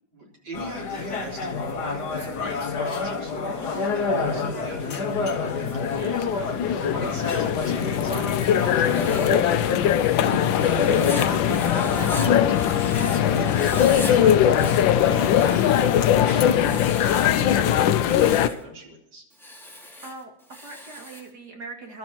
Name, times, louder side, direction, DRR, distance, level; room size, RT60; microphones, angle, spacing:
voice 1, 0.1-19.2, equal, 75° right, -2 dB, 4.5 m, -41 dB
sound 1, 0.5-16.6, left 4 dB, 55° left, 2.1 m, -29 dB
sound 2, 4.6-18.5, left 10 dB, 80° left, 1.4 m, -21 dB
Writing, 8.5-13.2 13.4-14.1 14.4-16.0 16.4-17.4 17.9-18.6 19.3-21.3, left 1 dB, ahead, 2.5 m, -40 dB
voice 2, 17.4-17.8 20.0-22.0, right 3 dB, 55° right, 1 dB, 2.9 m, -41 dB
29.0 x 12.0 x 3.0 m, 0.78 s
omnidirectional pair, 2.1 m